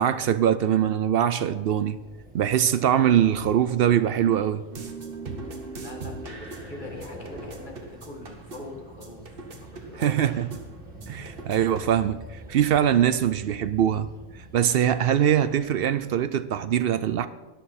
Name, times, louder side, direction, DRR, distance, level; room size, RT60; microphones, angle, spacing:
voice 1, 0.0-2.0 2.3-4.6 10.0-10.5 11.1-12.2 12.5-14.1 14.5-17.3, right 10 dB, 70° right, 0.5 m, -22 dB
sound 1, 1.5-16.1, right 1 dB, 5° right, 2.2 m, -46 dB
Old castle (loopable), 4.7-12.0, right 3 dB, 45° right, 1.4 m, -41 dB
voice 2, 5.8-9.4 9.6-10.4, left 2 dB, 35° left, 2.0 m, -43 dB
13.0 x 11.0 x 4.3 m
omnidirectional pair, 1.4 m